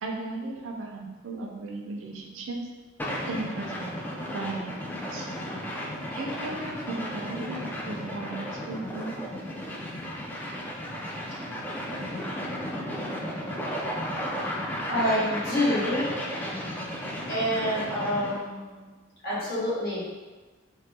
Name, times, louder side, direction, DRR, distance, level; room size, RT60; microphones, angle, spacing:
voice 1, 0.0-2.6 3.3-5.3 6.1-9.1 10.4-10.5, right 2 dB, 70° right, 1 dB, 0.5 m, -36 dB
sound 1, 3.0-18.4, equal, 10° left, 0.3 m, -34 dB
voice 2, 14.6-16.0 17.3-18.9 19.2-20.0, equal, 50° left, -10 dB, 1.4 m, -28 dB
2.9 x 2.2 x 3.3 m, 1.2 s
head